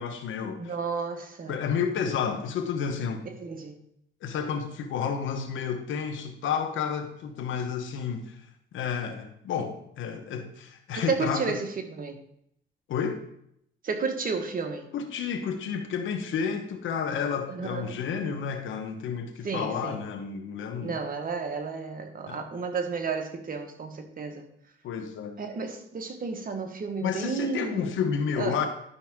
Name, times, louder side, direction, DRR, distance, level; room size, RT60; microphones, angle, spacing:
voice 1, 0.0-0.7 1.5-3.3 4.2-8.4 8.7-11.6 12.9-13.2 14.9-21.0 22.3-22.4 24.8-25.4 27.0-28.7, left 7 dB, 75° left, 6 dB, 1.2 m, -31 dB
voice 2, 0.6-1.6 3.3-3.8 10.9-12.2 13.8-14.9 17.5-18.0 19.4-20.0 20.8-24.4 25.4-27.8 28.4-28.6, right 5 dB, 45° right, 5 dB, 1.4 m, -32 dB
11.5 x 5.8 x 3.7 m, 0.73 s
cardioid pair, 90°, 20 cm